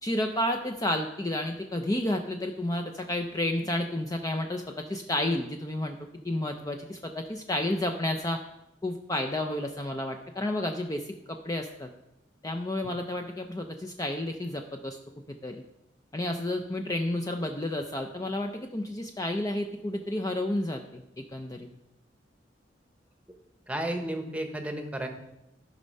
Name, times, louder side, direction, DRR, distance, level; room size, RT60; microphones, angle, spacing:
voice 1, 0.0-6.0 6.2-8.4 8.8-11.9 12.4-15.0 15.4-15.6 16.1-21.7, left 1 dB, 20° left, 4 dB, 0.5 m, -31 dB
voice 2, 23.7-25.1, right 1 dB, 5° right, 5 dB, 1.0 m, -32 dB
13.0 x 5.4 x 5.3 m, 0.90 s
head